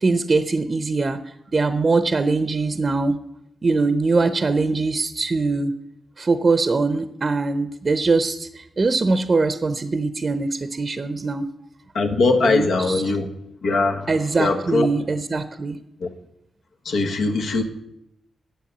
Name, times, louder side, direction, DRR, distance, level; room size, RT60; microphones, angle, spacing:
voice 1, 0.0-3.2 3.6-5.7 6.2-11.5 12.4-13.0 14.1-15.8, right 3 dB, 40° right, 11 dB, 0.7 m, -22 dB
voice 2, 11.9-13.3 13.6-14.1 14.4-14.9 16.0-16.1 16.8-17.6, left 3 dB, 80° left, 3 dB, 1.4 m, -21 dB
10.0 x 7.4 x 6.7 m, 0.80 s
cardioid pair, 70°, 0 cm